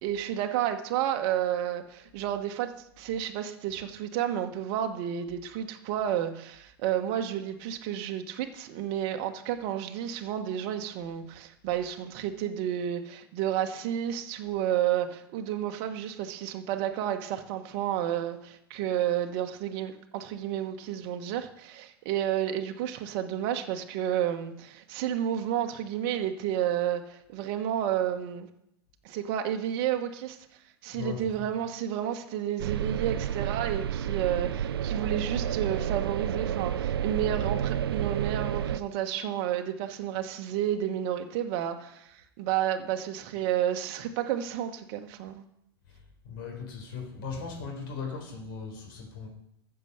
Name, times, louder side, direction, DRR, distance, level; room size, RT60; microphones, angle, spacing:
voice 1, 0.0-28.5 29.0-30.4 30.8-45.4, right 10 dB, 45° right, 6 dB, 1.3 m, -31 dB
voice 2, 30.9-31.5 46.2-49.3, left 5 dB, 55° left, 1 dB, 4.2 m, -38 dB
sound 1, 32.6-38.8, right 9 dB, 70° right, 0.5 m, -30 dB
14.0 x 6.9 x 6.6 m, 0.79 s
figure-of-eight pair, 95°, 13 cm